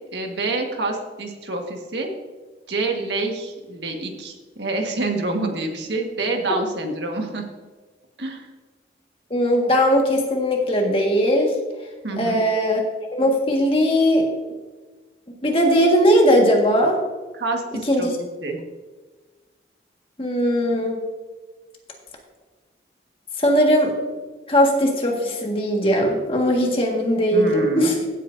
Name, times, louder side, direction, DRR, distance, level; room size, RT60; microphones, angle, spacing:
voice 1, 0.1-2.1 2.7-7.4 8.2-8.5 12.0-12.4 17.3-18.1 18.4-18.6 27.3-27.9, right 2 dB, 80° right, 2 dB, 1.6 m, -27 dB
voice 2, 9.3-11.5 12.2-12.8 13.1-14.2 15.4-17.0 17.9-18.1 20.2-21.0 23.4-23.9 24.5-27.9, equal, 30° left, 0 dB, 1.7 m, -19 dB
16.0 x 8.4 x 2.7 m, 1.3 s
head